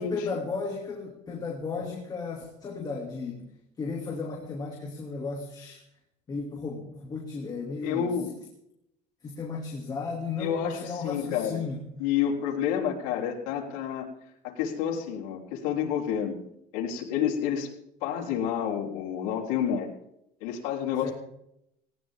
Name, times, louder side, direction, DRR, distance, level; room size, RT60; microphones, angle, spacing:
voice 1, 0.0-3.5 3.8-5.8 6.3-8.2 9.2-11.8 21.0-21.1, left 4 dB, 20° left, 0 dB, 2.6 m, -34 dB
voice 2, 7.8-8.3 10.4-11.6 12.0-14.1 14.4-16.4 16.7-17.7 18.0-19.9 20.4-21.1, left 8 dB, 85° left, -2 dB, 3.7 m, -29 dB
19.0 x 18.0 x 3.6 m, 0.79 s
cardioid pair, 160°, 18 cm